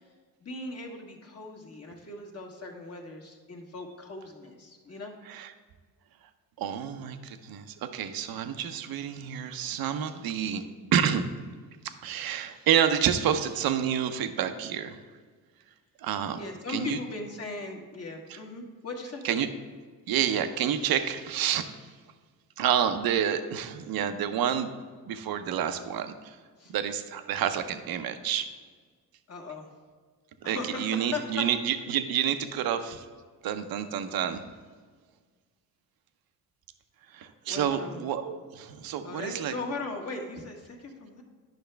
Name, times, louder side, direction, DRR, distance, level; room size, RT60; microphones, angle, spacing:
voice 1, 0.4-5.1 16.3-19.5 26.6-26.7 29.3-29.7 30.4-31.4 37.5-38.0 39.0-41.2, left 3 dB, 40° left, 1 dB, 1.5 m, -38 dB
voice 2, 6.6-10.6 10.9-11.2 11.8-15.0 16.0-16.4 16.7-17.0 18.3-18.4 19.2-19.5 20.1-21.7 22.6-24.7 25.1-26.4 26.7-28.5 30.4-33.0 33.4-34.4 37.1-39.6, right 9 dB, 65° right, 9 dB, 0.7 m, -29 dB
10.5 x 5.7 x 3.3 m, 1.5 s
cardioid pair, 85°, 39 cm